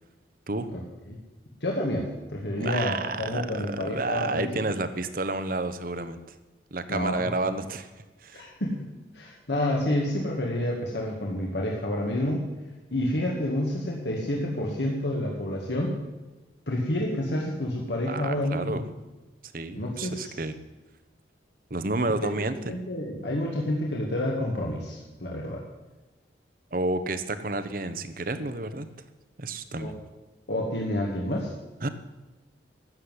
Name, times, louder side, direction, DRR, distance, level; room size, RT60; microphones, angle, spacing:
voice 1, 1.6-4.5 6.9-7.5 8.3-12.5 12.9-16.0 16.7-18.8 19.8-20.3 22.2-22.3 22.7-25.6 29.8-29.9 30.5-31.5, left 1 dB, 75° left, -2 dB, 2.1 m, -29 dB
voice 2, 2.6-6.4 6.7-7.9 8.2-8.5 18.1-18.8 19.5-20.6 21.7-22.7 26.7-28.9 29.4-29.9 31.8-31.9, right 2 dB, 50° right, 11 dB, 1.0 m, -30 dB
13.0 x 7.6 x 9.8 m, 1.2 s
head